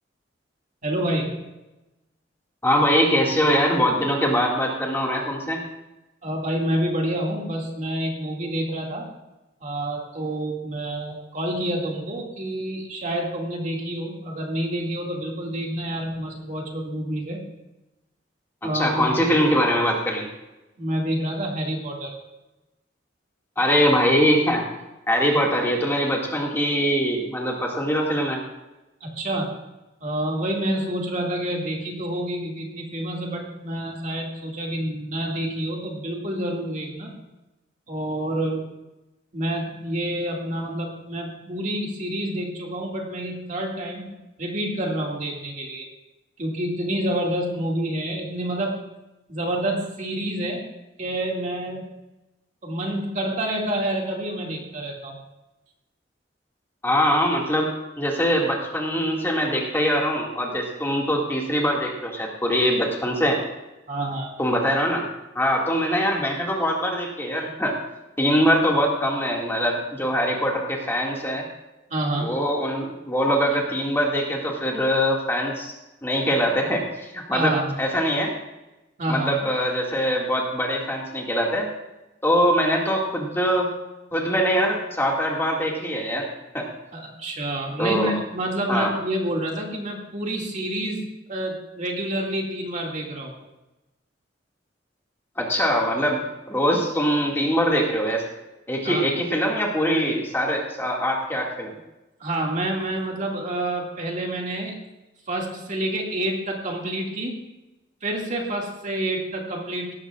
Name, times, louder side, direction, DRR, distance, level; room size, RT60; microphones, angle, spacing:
voice 1, 0.8-1.4 6.2-9.1 9.6-17.4 18.6-19.1 20.8-22.2 25.3-25.4 29.0-29.6 30.0-37.2 37.9-38.7 39.3-45.9 46.4-48.8 49.3-50.7 51.0-51.9 52.6-55.2 63.9-64.3 71.9-72.3 77.3-77.7 79.0-79.4 86.9-93.3 98.8-99.1 102.2-104.8 105.3-107.4 108.0-109.9, right 1 dB, 45° right, -1 dB, 2.2 m, -28 dB
voice 2, 2.6-5.6 18.6-20.3 23.6-24.6 25.1-28.4 56.8-63.4 64.4-65.1 65.4-67.7 68.2-71.4 72.2-75.7 76.0-77.5 77.8-78.3 79.1-81.7 82.2-83.8 84.1-86.7 87.8-88.1 88.7-88.9 95.4-98.2 98.7-101.7, equal, 15° left, -1 dB, 2.1 m, -23 dB
17.5 x 14.0 x 2.4 m, 1.0 s
head